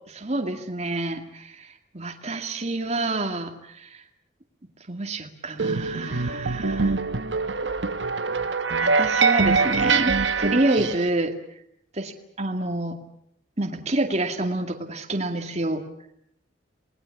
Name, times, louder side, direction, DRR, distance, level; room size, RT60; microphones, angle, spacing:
voice 1, 0.1-1.7 1.9-4.0 4.9-7.0 8.8-11.3 12.0-12.1 12.4-13.0 13.6-15.8, right 2 dB, 35° right, 4 dB, 2.3 m, -28 dB
sound 1, 5.6-11.1, right 4 dB, 75° right, 1.3 m, -23 dB
28.5 x 20.0 x 8.5 m, 0.72 s
head